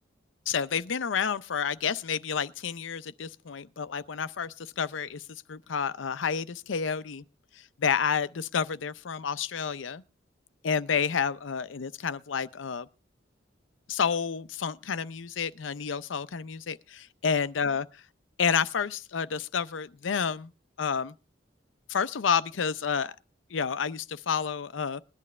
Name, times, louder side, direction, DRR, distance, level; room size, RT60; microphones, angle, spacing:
voice 1, 0.5-5.2 5.5-7.2 7.8-10.0 10.6-12.9 13.9-17.9 18.4-20.5 20.8-21.1 21.9-23.1 23.5-25.0, left 6 dB, 85° left, 0.6 m, -30 dB
21.0 x 11.0 x 3.2 m
head